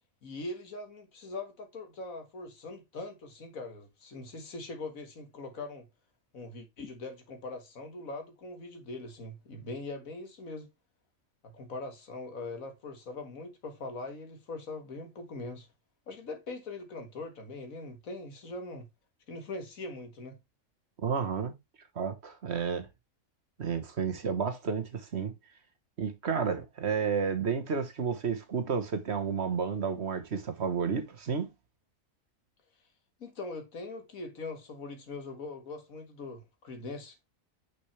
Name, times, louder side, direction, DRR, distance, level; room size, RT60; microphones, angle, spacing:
voice 1, 0.2-5.9 6.3-10.7 11.4-15.7 16.1-18.9 19.3-20.4 33.2-37.2, left 2 dB, 85° left, 2.0 m, -41 dB
voice 2, 21.0-21.6 21.9-22.9 23.6-25.3 26.0-31.5, right 6 dB, 55° right, 1.3 m, -31 dB
6.1 x 5.9 x 3.2 m
omnidirectional pair, 1.4 m